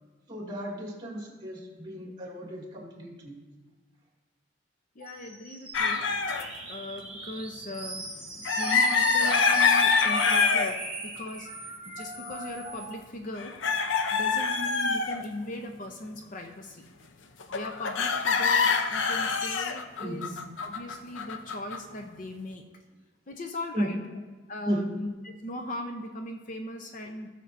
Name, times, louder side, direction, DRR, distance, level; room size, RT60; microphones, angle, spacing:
voice 1, 0.3-3.4 20.0-20.4 23.7-24.0 24.7-25.0, right 1 dB, 25° right, -3 dB, 2.1 m, -34 dB
voice 2, 5.0-6.1 6.7-8.1 8.6-11.5 11.9-13.6 14.1-16.9 17.5-22.6 23.3-24.0 24.5-27.3, left 1 dB, 45° left, 4 dB, 0.6 m, -39 dB
sound 1, 5.0-13.0, right 3 dB, 5° right, 2.7 m, -39 dB
sound 2, 5.7-6.5 8.4-10.8 11.3-11.4 13.3-15.2 17.4-21.9, left 5 dB, 85° left, 0.6 m, -25 dB
17.5 x 6.6 x 2.6 m, 1.3 s
head